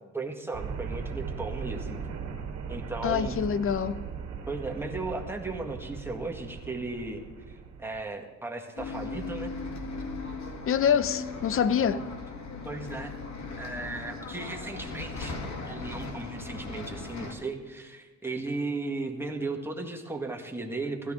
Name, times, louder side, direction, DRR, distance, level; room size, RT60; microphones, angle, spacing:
voice 1, 0.1-2.0 2.7-3.4 4.5-9.5 11.9-12.1 12.6-13.1 13.6-21.1, right 3 dB, 10° right, 1.6 m, -36 dB
sound 1, 0.5-8.0, right 6 dB, 60° right, 2.1 m, -38 dB
voice 2, 3.0-4.0 10.7-12.1, left 8 dB, 45° left, 0.6 m, -25 dB
Bus, 8.8-17.3, left 3 dB, 65° left, 1.9 m, -38 dB
16.0 x 13.0 x 3.7 m
cardioid pair, 90°, 30 cm